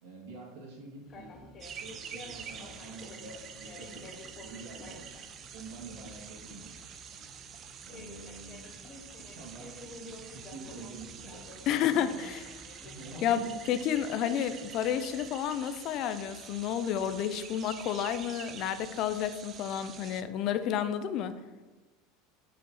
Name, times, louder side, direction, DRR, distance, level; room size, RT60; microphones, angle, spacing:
voice 1, 0.0-1.3 1.8-4.1 4.4-5.3 5.5-6.8 7.8-8.8 9.2-9.7 10.0-11.5 11.9-12.4 12.8-13.6, right 3 dB, 75° right, -2 dB, 2.0 m, -47 dB
sound 1, 1.0-14.0, left 3 dB, 30° left, 0.9 m, -51 dB
sound 2, 1.6-20.2, right 8 dB, 30° right, 0.4 m, -47 dB
voice 2, 11.7-12.4 13.2-13.4 13.7-21.3, left 9 dB, 45° left, 11 dB, 0.4 m, -30 dB
6.8 x 5.0 x 3.0 m, 1.2 s
supercardioid pair, 145°, 0 cm